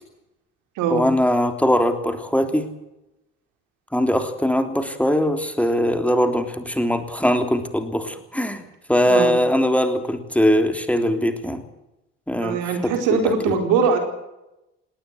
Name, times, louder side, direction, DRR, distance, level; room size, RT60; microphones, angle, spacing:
voice 1, 0.9-2.7 3.9-11.6 12.3-13.2 13.5-13.6, equal, 5° left, 7 dB, 3.4 m, -21 dB
voice 2, 12.3-14.0, right 5 dB, 75° right, 6 dB, 4.8 m, -21 dB
19.0 x 19.0 x 8.1 m, 0.92 s
hypercardioid pair, 55°, 31 cm